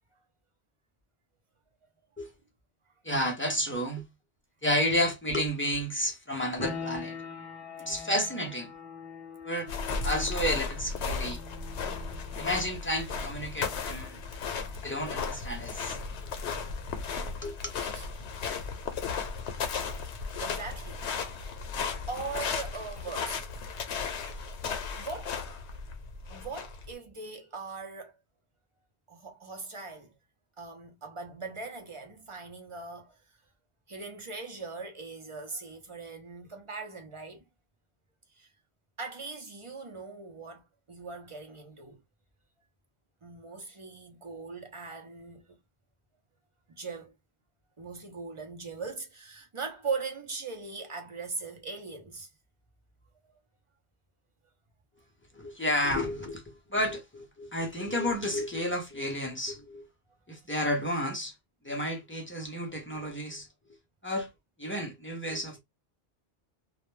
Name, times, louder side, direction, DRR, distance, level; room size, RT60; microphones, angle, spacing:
voice 1, 3.0-4.1 4.6-7.2 7.8-8.7 9.4-9.7 10.0-11.4 12.4-14.2 14.8-16.0 17.4-17.6 55.3-59.9 60.3-61.3 61.6-63.5 64.0-64.3 64.6-65.6, equal, 15° left, 0.5 m, -31 dB
sound 1, 6.6-17.1, left 5 dB, 60° left, 0.8 m, -45 dB
sound 2, 9.7-26.9, left 5 dB, 85° left, 0.9 m, -35 dB
voice 2, 17.0-17.4 17.7-18.1 19.8-19.9 20.4-21.0 22.1-23.4 25.0-25.4 26.3-28.1 29.1-30.1 30.6-33.2 33.9-37.4 38.4-38.5 39.0-42.0 43.2-45.6 46.7-47.1 47.8-52.3, right 4 dB, 35° right, 0.5 m, -40 dB
2.2 x 2.1 x 3.0 m
omnidirectional pair, 1.1 m